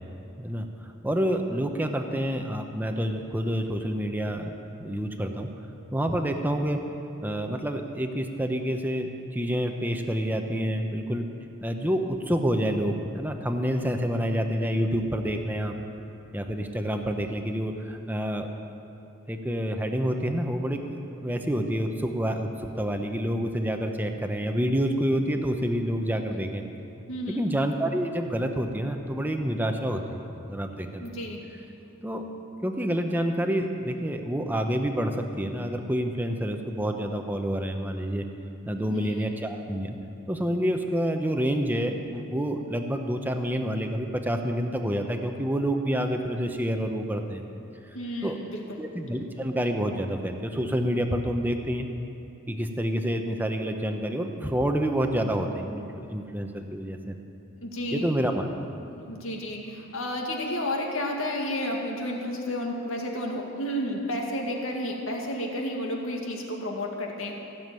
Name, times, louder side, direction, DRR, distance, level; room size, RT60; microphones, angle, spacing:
voice 1, 1.0-4.5 4.8-5.5 5.9-6.8 7.2-11.3 11.6-15.8 16.3-18.5 19.3-26.6 27.3-31.0 32.0-32.2 32.6-38.3 38.7-40.0 40.3-47.4 48.2-48.4 48.8-51.9 52.5-57.1 57.9-58.5, equal, 10° right, 4 dB, 0.8 m, -28 dB
voice 2, 27.1-27.4 31.0-31.4 38.8-39.3 47.9-48.8 57.6-58.1 58.9-67.3, left 1 dB, 70° left, 0 dB, 2.1 m, -31 dB
15.5 x 7.2 x 9.2 m, 2.7 s
head